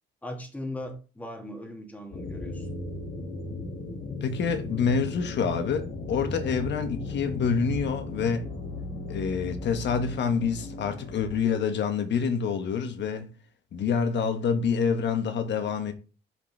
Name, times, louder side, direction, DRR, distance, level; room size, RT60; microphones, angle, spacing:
voice 1, 0.2-2.7, left 1 dB, 10° left, 1.6 m, -38 dB
sound 1, 2.1-11.4, left 2 dB, 45° left, 1.6 m, -36 dB
voice 2, 4.2-8.4 9.1-13.3 13.7-15.9, left 6 dB, 65° left, 1.2 m, -27 dB
5.2 x 5.2 x 3.9 m
cardioid pair, 90°, 20 cm